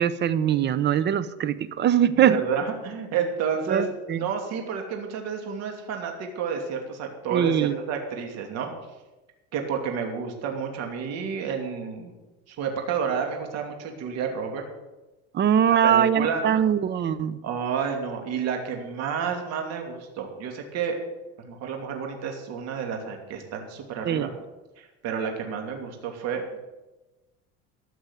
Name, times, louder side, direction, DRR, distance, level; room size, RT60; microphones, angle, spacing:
voice 1, 0.0-2.4 3.7-4.3 7.3-7.8 15.3-17.4 24.0-24.3, right 9 dB, 35° right, 15 dB, 0.8 m, -22 dB
voice 2, 2.2-8.7 9.5-12.1 12.5-14.6 15.8-16.4 17.4-21.0 21.4-24.3 24.8-26.6, right 6 dB, 60° right, 3 dB, 2.8 m, -30 dB
14.5 x 6.2 x 9.6 m, 1.1 s
cardioid pair, 130°, 30 cm